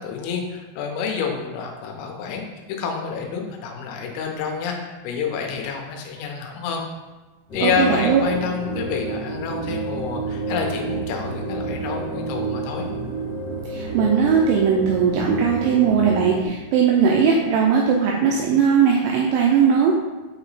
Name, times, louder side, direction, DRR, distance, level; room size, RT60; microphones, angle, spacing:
voice 1, 0.0-6.8 7.5-12.8, left 6 dB, 90° left, 1 dB, 3.3 m, -28 dB
sound 1, 7.5-16.5, right 3 dB, 70° left, 1.7 m, -29 dB
voice 2, 7.6-8.2 13.7-20.0, right 6 dB, 90° right, -2 dB, 2.6 m, -19 dB
8.5 x 2.9 x 4.1 m, 1.2 s
omnidirectional pair, 5.9 m